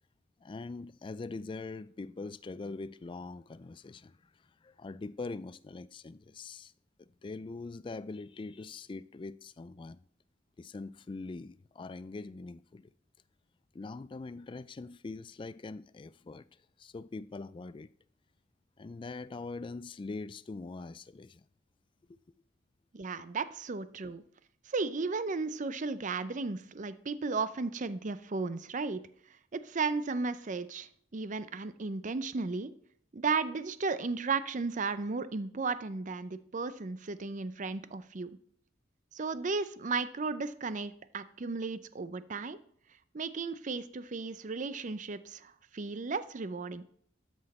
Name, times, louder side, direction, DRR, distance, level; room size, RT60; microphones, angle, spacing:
voice 1, 0.4-4.2 4.6-6.7 7.0-10.0 10.6-12.9 13.7-16.5 16.8-17.9 18.8-21.4, left 3 dB, 25° left, 0.3 m, -42 dB
voice 2, 22.9-24.2 24.7-29.0 29.5-32.7 33.1-38.4 39.1-42.6 43.1-46.8, right 4 dB, 40° right, 0.5 m, -34 dB
13.0 x 6.2 x 4.3 m
head